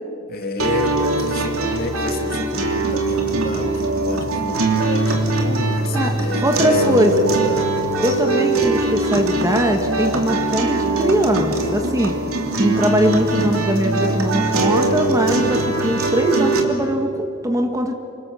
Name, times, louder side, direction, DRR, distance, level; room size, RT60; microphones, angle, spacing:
voice 1, 0.3-7.8, left 1 dB, 45° left, 4 dB, 2.6 m, -29 dB
sound 1, 0.6-16.6, right 2 dB, 75° right, 3.2 m, -21 dB
voice 2, 6.4-7.2 8.0-12.2 12.6-17.9, equal, 15° right, 5 dB, 1.5 m, -21 dB
28.0 x 25.0 x 7.1 m, 2.7 s
head